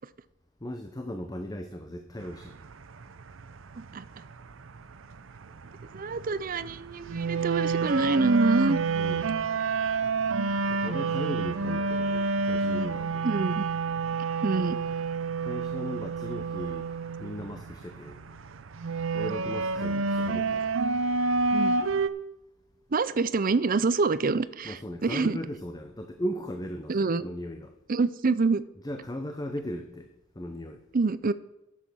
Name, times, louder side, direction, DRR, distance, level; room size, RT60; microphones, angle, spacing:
voice 1, 0.6-2.5 9.0-9.3 10.7-13.2 15.4-16.9 17.2-18.2 19.1-20.6 24.6-27.7 28.8-30.1 30.4-30.8, equal, 20° left, 6 dB, 0.8 m, -37 dB
sound 1, 2.2-22.1, right 4 dB, 85° right, 0.6 m, -29 dB
voice 2, 5.9-8.8 13.2-13.7 14.4-14.8 21.5-21.8 22.9-25.4 26.9-27.3 27.9-28.7 30.9-31.3, right 4 dB, 45° right, 16 dB, 0.5 m, -26 dB
11.0 x 7.4 x 6.2 m, 0.95 s
head